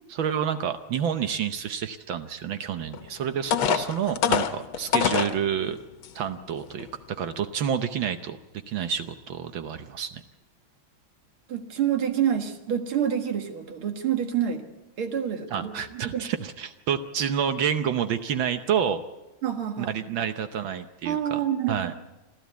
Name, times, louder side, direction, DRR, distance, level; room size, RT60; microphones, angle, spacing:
voice 1, 0.1-5.8 6.1-8.4 8.7-10.2 15.5-19.0 19.8-21.4 21.7-21.9, right 8 dB, 70° right, 9 dB, 1.6 m, -29 dB
sound 1, 2.9-3.0 3.5-5.4 6.0-6.1 6.6-6.8, left 8 dB, 75° left, 1.8 m, -24 dB
voice 2, 11.5-14.7 15.0-16.2 19.4-19.9 21.0-22.0, right 9 dB, 90° right, 6 dB, 2.5 m, -27 dB
27.5 x 13.0 x 8.3 m, 1.0 s
omnidirectional pair, 2.3 m